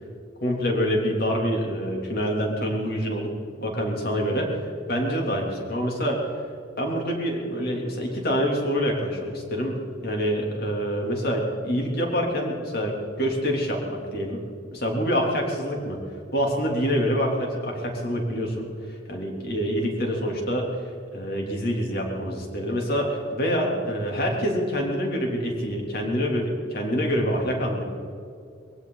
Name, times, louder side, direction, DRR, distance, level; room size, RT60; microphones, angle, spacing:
voice 1, 0.4-3.3 3.6-6.2 6.8-14.4 14.7-16.0 16.3-18.7 19.1-20.7 21.1-27.8, equal, 50° left, 0 dB, 3.1 m, -26 dB
21.5 x 16.5 x 4.0 m, 2.4 s
head